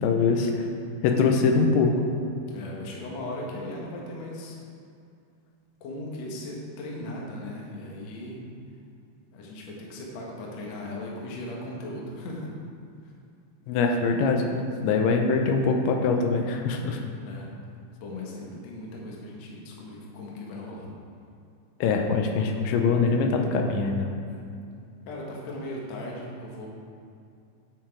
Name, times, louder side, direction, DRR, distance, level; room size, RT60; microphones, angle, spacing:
voice 1, 0.0-0.5 1.0-1.9 13.7-17.0 21.8-24.1, left 4 dB, 85° left, 3 dB, 3.0 m, -23 dB
voice 2, 2.5-4.6 5.8-8.4 9.3-12.5 17.2-17.5 18.0-20.9 24.2-24.4 25.1-26.7, left 1 dB, 70° left, -2 dB, 1.6 m, -37 dB
9.2 x 6.8 x 4.6 m, 2.4 s
omnidirectional pair, 5.2 m